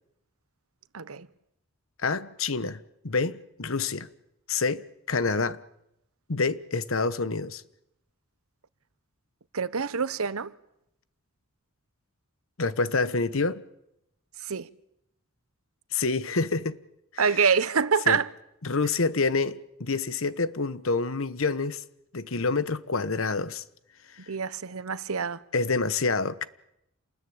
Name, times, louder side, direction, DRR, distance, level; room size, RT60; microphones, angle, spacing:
voice 1, 0.9-1.3 9.5-10.5 14.5-14.7 17.2-18.3 24.3-25.4, right 6 dB, 85° right, 0.9 m, -26 dB
voice 2, 2.0-4.1 4.5-5.6 6.3-7.6 12.6-13.6 15.9-16.8 17.1-17.5 18.1-18.2 18.6-21.8 22.1-23.6 25.5-26.4, left 4 dB, 70° left, 1.1 m, -27 dB
28.0 x 20.5 x 8.6 m
head